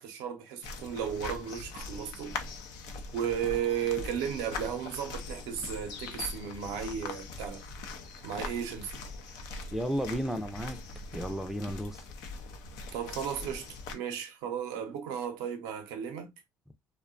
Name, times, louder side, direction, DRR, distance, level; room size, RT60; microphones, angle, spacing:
voice 1, 0.0-2.4 3.1-7.6 8.2-9.0 12.9-16.3, right 8 dB, 85° right, 0.6 m, -34 dB
sound 1, 0.6-13.9, left 4 dB, 85° left, 0.5 m, -41 dB
voice 2, 9.7-10.8 11.1-12.1, equal, 5° right, 0.4 m, -33 dB
2.6 x 2.2 x 2.4 m
supercardioid pair, 85°, 7 cm